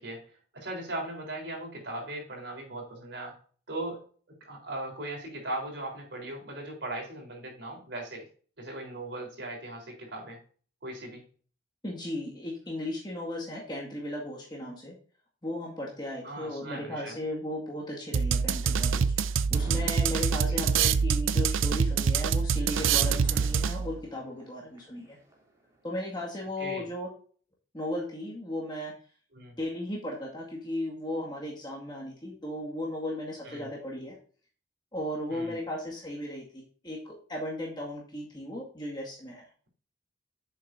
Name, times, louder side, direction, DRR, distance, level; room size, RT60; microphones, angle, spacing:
voice 1, 0.0-3.3 3.7-4.0 4.4-8.3 8.6-10.4 10.8-11.2 16.2-17.1 20.4-20.9 23.3-23.5 26.6-26.9 29.3-29.6 33.5-33.7 35.3-35.6, right 1 dB, 60° right, 0 dB, 3.9 m, -39 dB
voice 2, 11.8-14.9 15.4-25.2 25.8-27.1 27.7-28.9 29.6-34.2 34.9-39.4, left 1 dB, 20° left, -4 dB, 2.0 m, -36 dB
sound 1, 18.1-24.0, right 6 dB, 80° right, 0.5 m, -25 dB
sound 2, 19.5-21.1 21.4-21.8 22.7-25.8, right 1 dB, 15° right, 3.0 m, -47 dB
10.5 x 7.4 x 2.7 m, 0.42 s
head